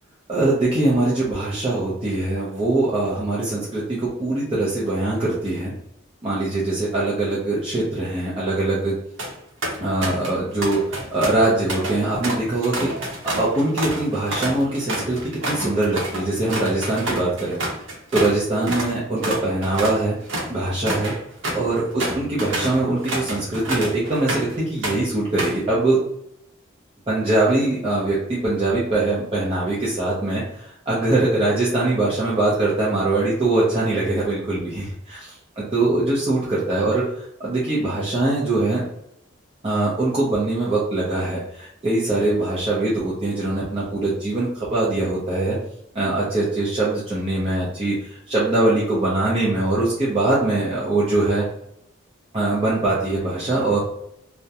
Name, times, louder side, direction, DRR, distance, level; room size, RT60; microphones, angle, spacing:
voice 1, 0.3-5.7 6.2-8.9 9.8-12.9 13.2-15.2 15.5-17.6 18.1-20.2 20.5-21.1 21.5-26.0 27.1-35.2 35.6-38.8 39.6-45.6 45.9-51.4 52.3-53.8, right 2 dB, 30° right, -8 dB, 0.5 m, -22 dB
sound 1, 9.0-9.3 9.6-10.4 10.6-18.4 18.7-18.9 19.2-24.6 24.8-25.6, right 1 dB, 70° right, 0.8 m, -28 dB
2.3 x 2.1 x 2.7 m, 0.77 s
head